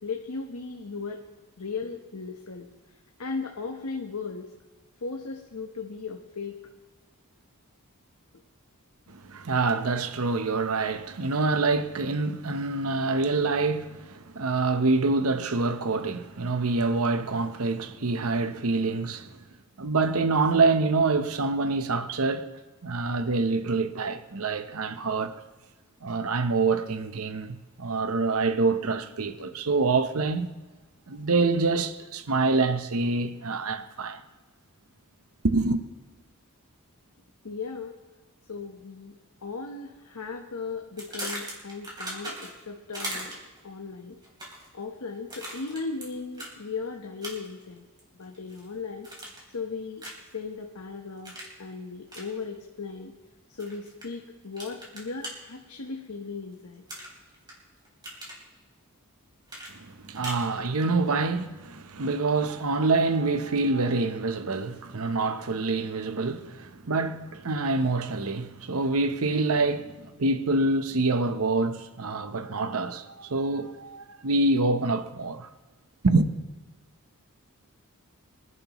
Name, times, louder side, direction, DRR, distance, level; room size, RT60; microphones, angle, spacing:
voice 1, 0.0-1.2 1.6-2.7 3.2-4.5 5.0-6.6 37.4-37.9 38.5-39.1 39.4-43.3 43.6-44.2 44.7-47.8 48.2-49.1 49.5-50.0 50.3-51.3 51.6-53.1 53.6-56.8, left 4 dB, 75° left, 1.1 m, -36 dB
voice 2, 9.1-19.3 19.8-22.5 22.8-25.4 26.0-30.5 31.1-34.2 35.4-35.8 59.7-75.5 76.0-76.3, right 3 dB, 70° right, 0.9 m, -26 dB
sound 1, 41.0-42.6 42.9-43.6 44.2-44.7 45.3-46.1 46.3-46.5 47.2-47.6 48.0-48.6 49.0-49.5 50.0-50.3 51.2-51.5 52.1-52.3 53.6-54.0 54.6-55.3 56.9-57.5 57.8-58.4 59.5-60.5, right 1 dB, 20° right, 3.8 m, -38 dB
25.0 x 11.0 x 3.1 m
head